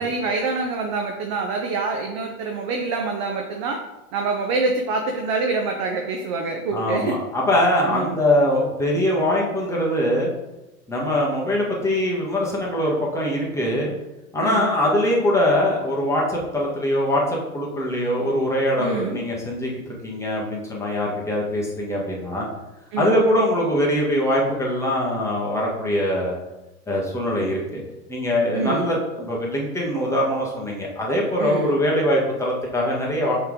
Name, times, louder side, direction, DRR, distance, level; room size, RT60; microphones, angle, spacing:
voice 1, 0.0-3.8 4.1-7.2 7.9-8.2 14.4-14.7 18.8-19.2 22.9-23.2 28.5-28.9 31.4-31.8, right 3 dB, 25° right, 3 dB, 0.3 m, -26 dB
voice 2, 6.7-10.3 10.9-13.9 14.3-22.5 23.0-26.4 26.9-27.8 28.1-33.3, left 1 dB, 5° left, -4 dB, 1.6 m, -22 dB
5.5 x 3.7 x 5.0 m, 1.0 s
hypercardioid pair, 110°, 45 cm